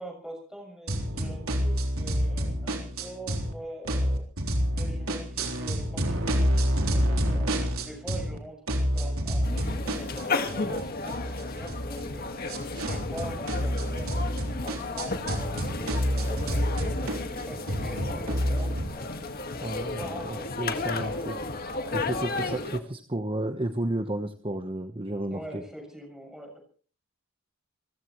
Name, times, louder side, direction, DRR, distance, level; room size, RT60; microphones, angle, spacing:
voice 1, 0.0-4.3 4.7-7.5 7.8-12.4 12.9-19.1 19.9-20.9 25.3-26.6, right 1 dB, 5° right, 2 dB, 6.7 m, -44 dB
sound 1, 0.9-3.5 3.8-8.4 8.7-18.9, equal, 80° right, 3.8 m, -28 dB
sound 2, 9.4-22.8, left 3 dB, 45° left, 1.8 m, -33 dB
voice 2, 19.6-21.4 21.9-25.6, right 1 dB, 25° right, 7 dB, 1.1 m, -32 dB
29.0 x 15.5 x 3.1 m, 0.42 s
head